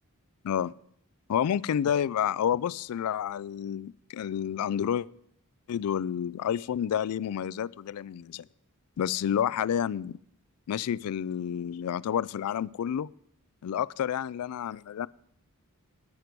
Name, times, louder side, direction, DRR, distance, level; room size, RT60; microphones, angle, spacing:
voice 1, 1.3-5.1 5.7-8.4 9.0-10.2 10.7-13.1 13.6-15.1, left 9 dB, 80° left, 20 dB, 0.3 m, -29 dB
12.0 x 9.7 x 4.6 m, 0.71 s
head